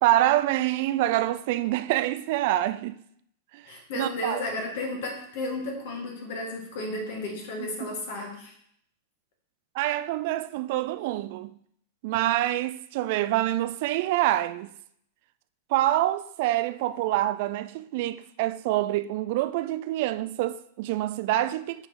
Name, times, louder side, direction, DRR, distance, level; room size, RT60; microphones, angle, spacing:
voice 1, 0.0-3.0 3.5-3.6 3.9-4.4 7.6-8.0 9.7-11.6 12.0-14.7 15.7-21.9, right 15 dB, 50° right, 0.4 m, -26 dB
voice 2, 3.6-8.5, left 2 dB, 55° left, 1.7 m, -33 dB
9.5 x 4.1 x 4.5 m
figure-of-eight pair, 95°, 0 cm